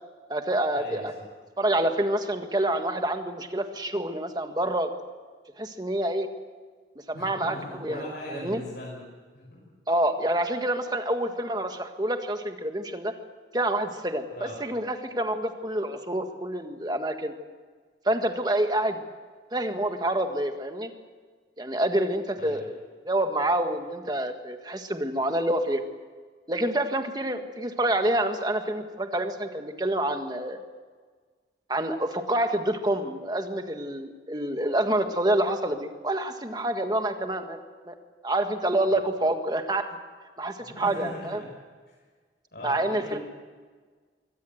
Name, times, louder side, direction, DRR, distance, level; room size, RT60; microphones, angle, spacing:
voice 1, 0.3-1.1 1.6-4.9 5.6-6.3 7.1-8.0 8.3-8.6 9.9-13.1 13.5-14.3 14.6-17.3 18.0-19.0 19.5-20.9 21.6-22.6 23.0-25.8 26.5-30.6 31.7-37.9 38.2-39.9 40.4-41.4 42.6-43.2, right 1 dB, 20° right, 6 dB, 1.6 m, -27 dB
voice 2, 7.1-9.0 9.3-9.6 14.3-14.6 22.4-22.7 38.8-39.0 40.6-41.5 42.5-43.2, left 1 dB, 65° left, -5 dB, 6.3 m, -40 dB
24.0 x 17.0 x 7.8 m, 1.5 s
head